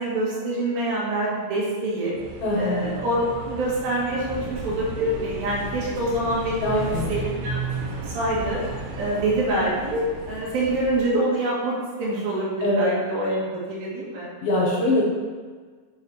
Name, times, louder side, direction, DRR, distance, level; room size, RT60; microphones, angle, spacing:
voice 1, 0.0-2.1 2.6-6.8 7.1-7.6 8.0-8.6 9.0-14.3, right 1 dB, 65° right, -6 dB, 3.2 m, -26 dB
sound 1, 2.2-9.4, right 4 dB, 90° right, 3.1 m, -35 dB
voice 2, 2.4-2.9 6.6-7.1 12.6-12.9 14.4-15.0, left 1 dB, 70° left, -4 dB, 3.1 m, -22 dB
sound 2, 4.2-11.0, left 1 dB, 50° left, 3.4 m, -38 dB
8.7 x 6.5 x 3.4 m, 1.5 s
omnidirectional pair, 4.8 m